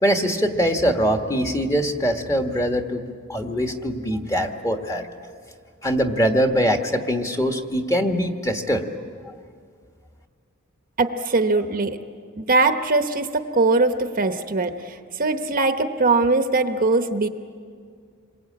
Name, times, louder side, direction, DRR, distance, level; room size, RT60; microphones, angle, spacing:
voice 1, 0.0-3.0 3.3-5.0 5.8-8.8, equal, 15° left, 4 dB, 1.5 m, -22 dB
voice 2, 11.0-12.0 12.4-17.3, right 3 dB, 40° right, 7 dB, 1.0 m, -21 dB
27.5 x 22.5 x 8.7 m, 2.1 s
head